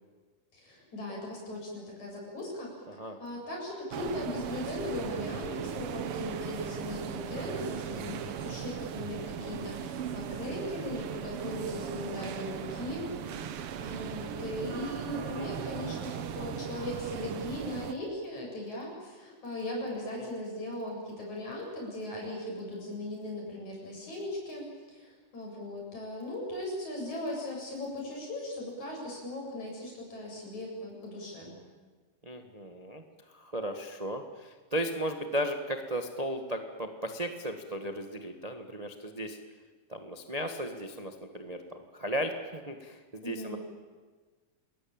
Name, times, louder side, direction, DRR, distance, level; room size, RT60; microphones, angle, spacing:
voice 1, 0.5-2.7 3.2-13.1 13.8-31.5 43.2-43.6, left 1 dB, 65° left, -1 dB, 9.2 m, -38 dB
voice 2, 2.9-3.2 15.2-15.6 20.2-20.3 32.2-33.0 33.3-39.4 39.9-43.6, equal, 20° right, 6 dB, 0.9 m, -36 dB
sound 1, 3.9-17.9, right 8 dB, 60° right, 1.6 m, -38 dB
29.0 x 20.5 x 8.9 m, 1.4 s
omnidirectional pair, 3.6 m